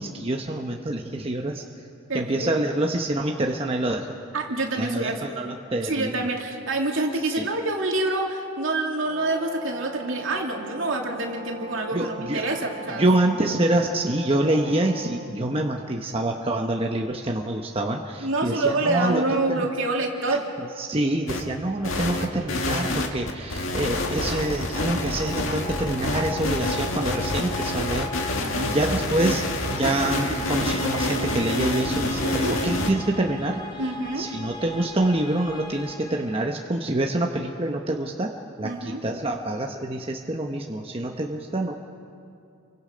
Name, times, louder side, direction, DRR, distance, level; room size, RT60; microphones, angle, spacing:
voice 1, 0.0-1.6 2.1-4.2 4.8-6.3 7.2-7.5 11.9-12.5 12.9-19.7 20.6-29.4 29.7-33.8 34.1-38.3 38.6-41.8, right 1 dB, 25° right, 1 dB, 1.0 m, -26 dB
voice 2, 2.1-2.5 4.3-5.3 5.8-13.0 18.2-20.5 28.4-28.7 30.3-30.4 32.2-32.6 33.8-34.3 38.6-39.0, right 2 dB, 70° right, 0 dB, 2.8 m, -27 dB
Brass instrument, 9.0-15.3, right 2 dB, 50° right, 2.7 m, -39 dB
sound 1, 21.3-21.4 21.8-32.9, left 2 dB, 75° left, 1.9 m, -27 dB
sound 2, 24.2-37.0, left 2 dB, 20° left, 1.1 m, -39 dB
29.5 x 24.0 x 5.2 m, 2.5 s
head